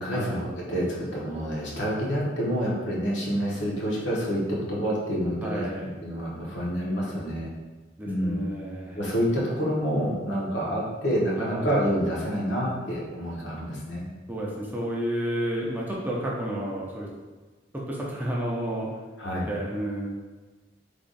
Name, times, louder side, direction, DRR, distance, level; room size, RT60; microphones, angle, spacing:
voice 1, 0.0-5.7 6.0-7.5 8.0-8.5 8.9-14.1 19.2-19.5, equal, 70° left, -5 dB, 1.0 m, -28 dB
voice 2, 5.4-5.8 8.0-9.0 11.4-11.8 14.3-17.1 17.7-18.9 19.5-20.2, right 1 dB, 10° right, -4 dB, 0.4 m, -31 dB
3.4 x 2.4 x 3.8 m, 1.3 s
head